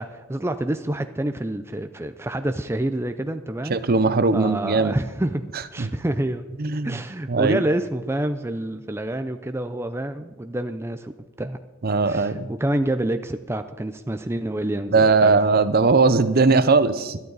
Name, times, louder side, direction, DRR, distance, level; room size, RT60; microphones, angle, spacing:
voice 1, 0.0-3.8 4.3-6.5 6.8-11.1 11.4-11.6 12.0-15.4, right 1 dB, 10° right, 8 dB, 0.5 m, -27 dB
voice 2, 3.7-5.0 5.8-5.9 6.6-7.0 7.3-7.6 11.8-12.5 14.9-17.2, right 4 dB, 45° right, 13 dB, 0.7 m, -19 dB
21.5 x 12.0 x 4.0 m, 1.1 s
head